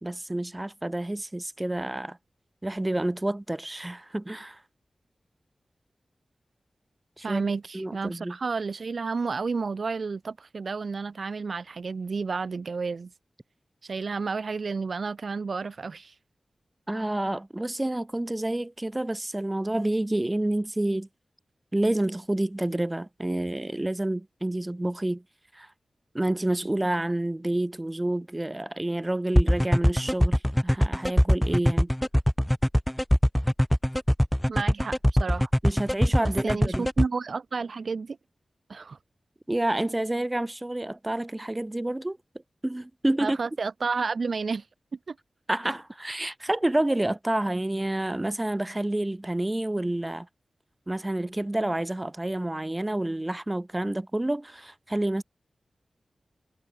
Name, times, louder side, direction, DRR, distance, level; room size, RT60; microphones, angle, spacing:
voice 1, 0.0-2.2 2.6-4.6 7.2-7.4 7.7-8.4 16.9-21.1 21.7-25.2 25.5-25.7 26.1-31.9 35.6-36.9 39.5-42.2 42.6-43.4 45.5-50.3 50.9-55.2, right 1 dB, 20° right, 1.1 m, -29 dB
voice 2, 7.2-13.1 13.8-16.1 34.5-35.5 36.2-38.2 38.7-39.0 43.2-44.6 45.1-45.2, right 4 dB, 70° right, 0.6 m, -31 dB
sound 1, 29.4-37.1, equal, 5° left, 0.4 m, -21 dB
cardioid pair, 50°, 0 cm